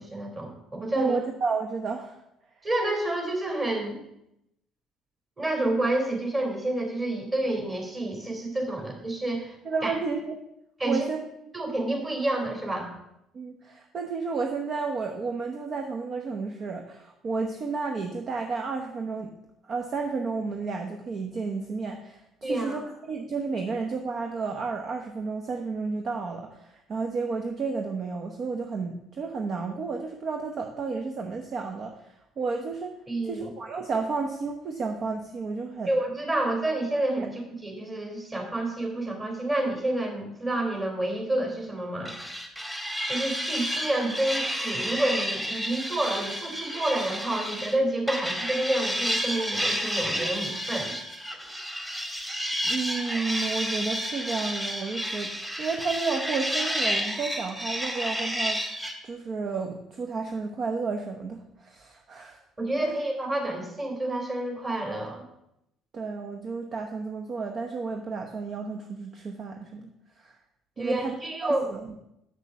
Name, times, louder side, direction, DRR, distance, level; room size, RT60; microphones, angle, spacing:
voice 1, 0.0-1.2 2.6-4.0 5.4-9.6 9.8-9.9 10.8-11.1 11.5-12.9 22.4-22.8 33.1-33.5 35.9-42.2 43.1-51.0 62.6-65.2 70.8-71.7, right 1 dB, 25° right, 1 dB, 3.2 m, -29 dB
voice 2, 0.9-2.2 9.6-10.4 10.8-11.2 13.3-19.3 19.6-22.8 23.1-33.0 33.3-35.9 37.2-37.3 52.6-58.6 59.0-62.4 62.8-62.9 65.9-69.9 70.2-70.4 70.8-71.1 71.4-71.9, right 4 dB, 45° right, 3 dB, 0.9 m, -32 dB
sound 1, 42.0-47.8 48.1-58.9, equal, 10° right, 1.7 m, -31 dB
7.1 x 6.6 x 6.3 m, 0.83 s
figure-of-eight pair, 50°, 0 cm